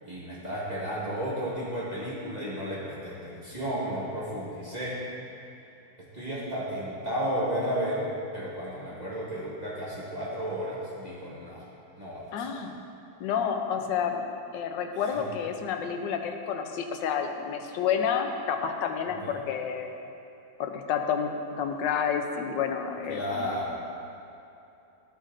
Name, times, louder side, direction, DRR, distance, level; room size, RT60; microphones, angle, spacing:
voice 1, 0.0-5.0 6.1-8.1 8.3-11.6 12.0-12.6 14.9-15.0 19.1-19.4 23.1-23.7, equal, 25° right, -8 dB, 1.3 m, -33 dB
voice 2, 12.3-12.7 13.2-14.2 14.5-19.9 20.6-23.5, left 7 dB, 75° left, 4 dB, 1.3 m, -29 dB
12.0 x 7.6 x 2.5 m, 2.7 s
omnidirectional pair, 2.0 m